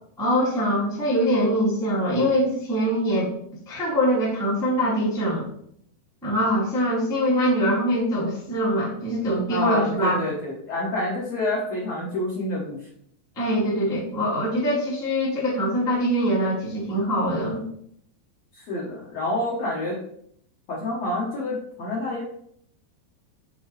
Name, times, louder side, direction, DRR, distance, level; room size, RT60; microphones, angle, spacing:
voice 1, 0.2-3.3 3.7-5.4 6.2-10.2 13.3-17.6, equal, ahead, -7 dB, 0.9 m, -23 dB
voice 2, 9.5-12.8 18.5-20.0 20.7-22.2, left 1 dB, 65° left, -5 dB, 1.7 m, -28 dB
5.8 x 4.5 x 4.0 m, 0.70 s
omnidirectional pair, 4.3 m